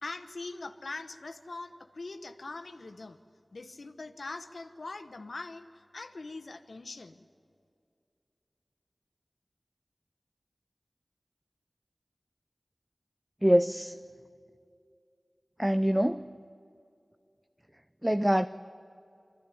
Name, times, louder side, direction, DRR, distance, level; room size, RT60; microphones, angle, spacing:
voice 1, 0.0-3.2 3.5-7.3, left 3 dB, 85° left, 8 dB, 1.0 m, -42 dB
voice 2, 13.4-14.0 15.6-16.3 18.0-18.5, equal, 10° right, 11 dB, 0.5 m, -24 dB
22.5 x 14.5 x 9.8 m, 2.5 s
wide cardioid pair, 45°, 0 cm